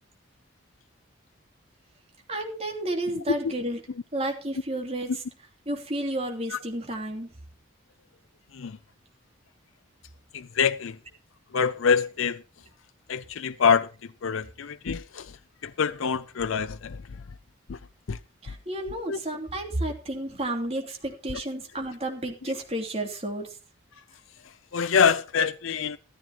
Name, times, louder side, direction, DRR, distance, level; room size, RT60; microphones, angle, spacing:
voice 1, 2.3-3.8 4.1-5.2 5.7-7.3 18.4-23.6, right 1 dB, 30° right, 2.9 m, -31 dB
voice 2, 10.3-11.0 11.5-12.4 13.1-13.9 14.2-15.3 15.6-17.0 17.7-17.8 18.1-18.2 19.1-19.2 24.7-26.0, left 6 dB, 80° left, 0.5 m, -25 dB
14.0 x 14.0 x 3.0 m
head